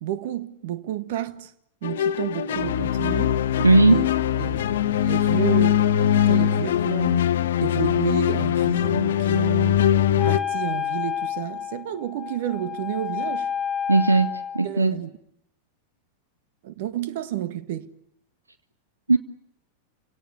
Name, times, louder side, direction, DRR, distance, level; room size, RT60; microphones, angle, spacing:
voice 1, 0.0-1.5 1.8-3.3 3.9-4.1 4.4-4.7 5.0-7.3 7.6-9.9 10.2-13.5 14.6-15.2 16.6-17.9, right 11 dB, 55° right, 1.6 m, -31 dB
sound 1, 1.8-10.4, left 10 dB, 60° left, 1.0 m, -21 dB
voice 2, 3.6-4.0 13.9-15.0 19.1-19.2, right 3 dB, 80° right, 1.0 m, -17 dB
Wind instrument woodwind instrument, 10.2-14.7, left 8 dB, 15° left, 2.5 m, -30 dB
30.0 x 17.5 x 9.6 m
figure-of-eight pair, 90°, 0 cm